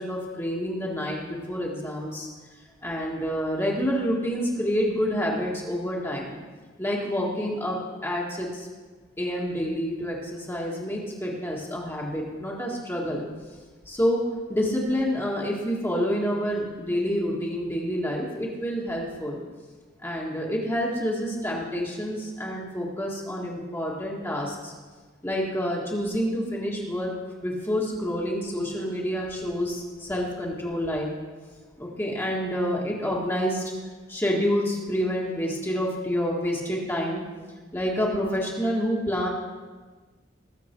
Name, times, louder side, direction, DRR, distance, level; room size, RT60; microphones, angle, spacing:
voice 1, 0.0-2.3 2.8-6.4 6.8-8.7 9.2-13.2 13.9-19.4 20.0-24.7 25.2-27.1 27.4-31.1 31.8-33.6 34.1-37.2 37.7-39.3, equal, 15° left, -3 dB, 1.9 m, -28 dB
20.5 x 7.1 x 4.6 m, 1.3 s
head